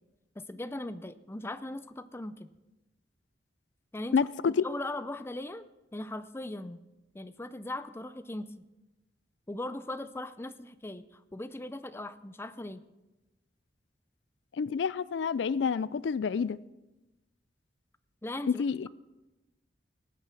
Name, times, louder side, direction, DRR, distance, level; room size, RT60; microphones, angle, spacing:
voice 1, 0.4-2.5 3.9-4.3 4.6-5.6 5.9-6.8 7.1-8.5 9.5-12.8 18.2-18.9, left 1 dB, 15° left, 0.5 m, -39 dB
voice 2, 4.1-4.6 14.5-16.6 18.5-18.9, left 6 dB, 75° left, 0.4 m, -28 dB
19.5 x 8.9 x 6.2 m
head